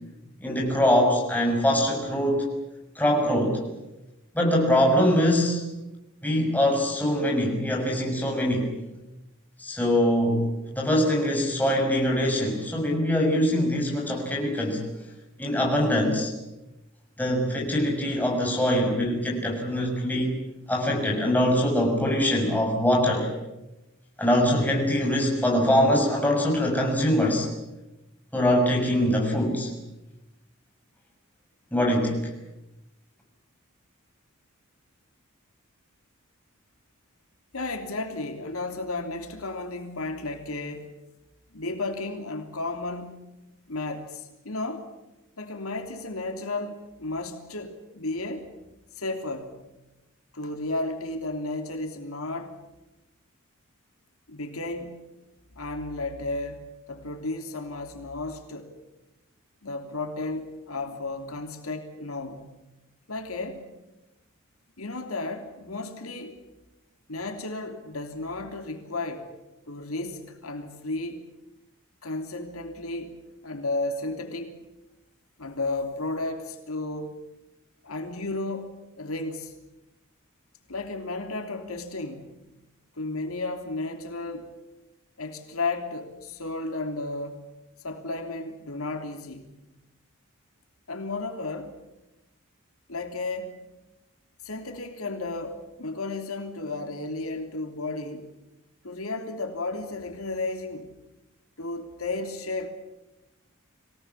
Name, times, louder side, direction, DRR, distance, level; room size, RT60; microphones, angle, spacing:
voice 1, 0.4-2.5 2.9-3.6 4.3-5.6 6.2-8.7 9.6-14.8 15.4-16.3 17.2-20.4 20.7-23.3 24.2-27.5 28.3-29.7 31.7-32.3, equal, 10° left, 0 dB, 6.6 m, -23 dB
voice 2, 37.5-40.9 41.5-43.3 43.7-44.9 45.4-48.5 48.9-49.6 50.3-52.6 54.3-55.1 55.6-58.7 59.6-62.5 63.1-63.6 64.8-66.4 67.1-69.3 69.7-71.2 72.0-73.2 73.4-74.6 75.4-77.2 77.8-79.5 80.7-82.3 83.0-84.5 85.2-87.4 87.8-89.5 90.9-91.8 92.9-93.6 94.4-98.3 98.8-100.9 101.6-102.7, left 2 dB, 85° left, 5 dB, 3.1 m, -33 dB
26.0 x 18.0 x 9.8 m, 0.98 s
head